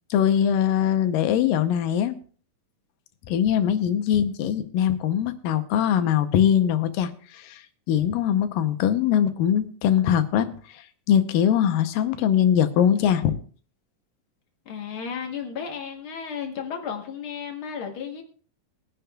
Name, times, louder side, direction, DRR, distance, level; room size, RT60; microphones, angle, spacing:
voice 1, 0.1-2.2 3.3-7.6 7.9-10.5 11.1-13.4, left 9 dB, 80° left, 2.5 m, -22 dB
voice 2, 14.6-18.2, left 7 dB, 60° left, 1.4 m, -33 dB
21.5 x 10.0 x 2.3 m
omnidirectional pair, 3.9 m